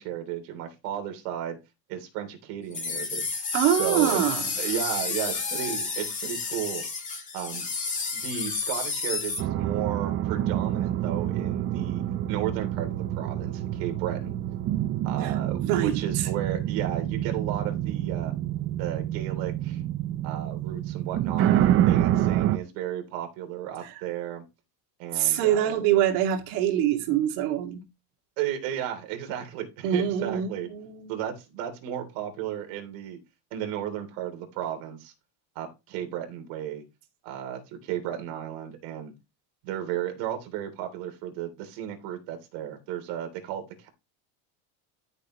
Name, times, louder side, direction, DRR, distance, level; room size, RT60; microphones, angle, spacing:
voice 1, 0.0-1.6 1.9-3.3 3.8-4.2 4.6-6.8 7.3-7.7 8.1-12.0 12.3-14.4 15.0-18.3 18.8-19.8 20.2-24.4 25.0-25.8 28.4-30.7 31.1-33.2 33.5-35.1 35.5-36.8 37.2-39.1 39.6-43.9, right 10 dB, 70° right, 3.3 m, -34 dB
sound 1, 2.7-9.4, left 4 dB, 15° left, 2.1 m, -31 dB
voice 2, 3.5-4.4 15.2-15.3 15.6-15.9 23.8-23.9 25.1-27.8 29.8-31.2, right 10 dB, 85° right, 2.5 m, -24 dB
sound 2, 9.4-22.6, right 12 dB, 30° right, 0.6 m, -27 dB
13.0 x 6.9 x 3.1 m
cardioid pair, 175°, 42 cm